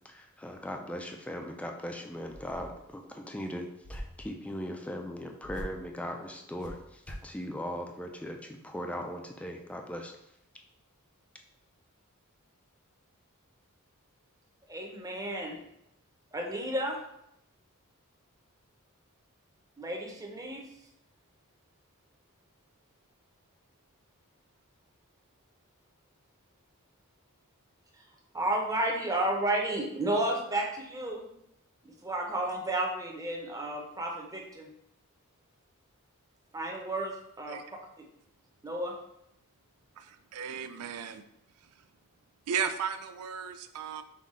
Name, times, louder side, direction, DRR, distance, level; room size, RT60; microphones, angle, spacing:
voice 1, 0.0-10.1, equal, 5° left, 3 dB, 0.4 m, -39 dB
sound 1, 2.3-2.9 3.8-4.3 5.4-5.9 6.6-7.3, equal, 35° left, 0.7 m, -43 dB
voice 2, 14.7-15.6 16.3-17.0 19.8-20.6 28.3-31.2 31.8-34.7 36.5-37.6 38.6-38.9, right 1 dB, 15° right, 0 dB, 0.7 m, -32 dB
voice 3, 37.5-37.8 40.0-41.2 41.6-41.9 42.5-44.0, right 7 dB, 80° right, 8 dB, 0.4 m, -35 dB
5.6 x 2.3 x 3.6 m, 0.78 s
head